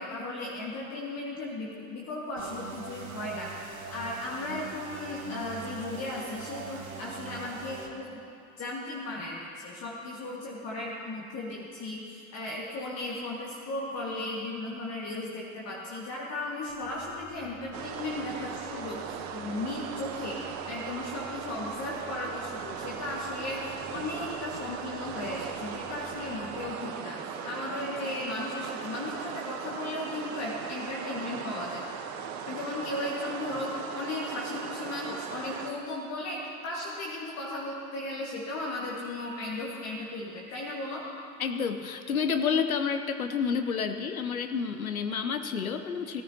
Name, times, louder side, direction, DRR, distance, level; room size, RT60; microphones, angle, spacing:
voice 1, 0.0-8.2 8.6-31.8 32.5-41.1, left 2 dB, 35° left, -4 dB, 1.9 m, -36 dB
sound 1, 2.4-7.9, right 5 dB, 80° right, 1.6 m, -42 dB
sound 2, 16.7-26.7, right 1 dB, 5° right, 3.5 m, -54 dB
sound 3, 17.7-35.7, right 7 dB, 40° right, 1.1 m, -38 dB
voice 2, 41.4-46.2, left 6 dB, 80° left, 8 dB, 0.8 m, -29 dB
17.5 x 14.0 x 2.9 m, 2.6 s
figure-of-eight pair, 75°, 42 cm